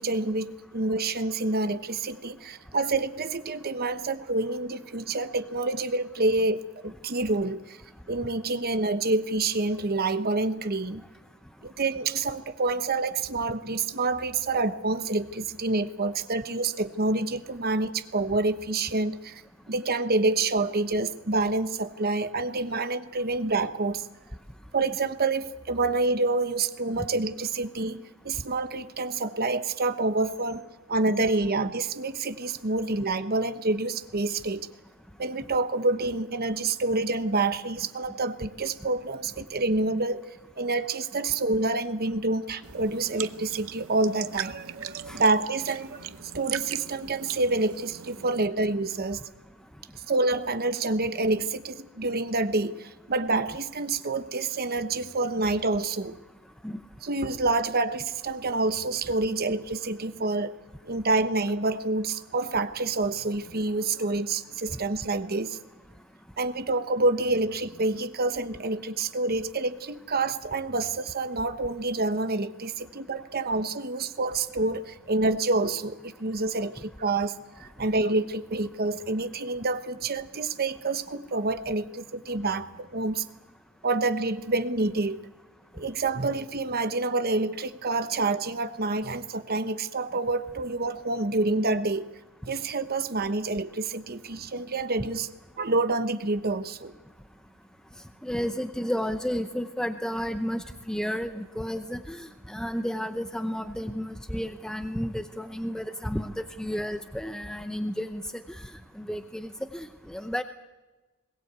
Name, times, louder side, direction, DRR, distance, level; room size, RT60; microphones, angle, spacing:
voice 1, 0.0-7.8 8.1-11.0 11.6-19.4 19.7-24.0 24.7-30.6 30.9-34.7 35.2-40.2 40.6-46.1 46.3-49.2 50.1-56.2 57.0-60.5 60.8-65.6 66.4-83.2 83.8-85.2 85.7-92.1 92.4-95.3 95.6-96.9, right 3 dB, 50° right, 10 dB, 1.1 m, -27 dB
sound 1, 42.6-48.5, right 10 dB, 80° right, 0.8 m, -39 dB
voice 2, 98.2-108.2 109.0-110.4, equal, 5° left, 8 dB, 0.7 m, -32 dB
21.5 x 18.0 x 8.2 m, 1.2 s
head